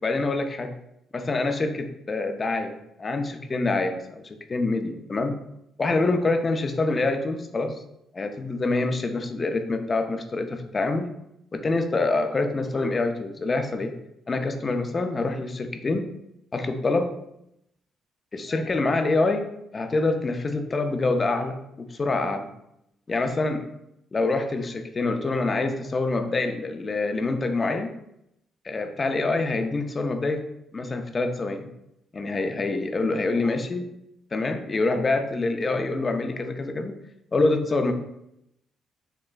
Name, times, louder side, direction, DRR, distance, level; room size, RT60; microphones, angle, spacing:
voice 1, 0.0-0.7 1.1-5.3 5.8-7.8 8.1-11.1 11.5-13.9 14.3-16.1 16.5-17.1 18.3-22.5 23.1-23.7 24.1-27.9 28.6-30.4 30.7-31.7 32.1-33.9 34.3-36.9 37.3-37.9, left 3 dB, 30° left, 6 dB, 0.4 m, -26 dB
4.4 x 3.0 x 2.5 m, 0.81 s
cardioid pair, 90°, 0 cm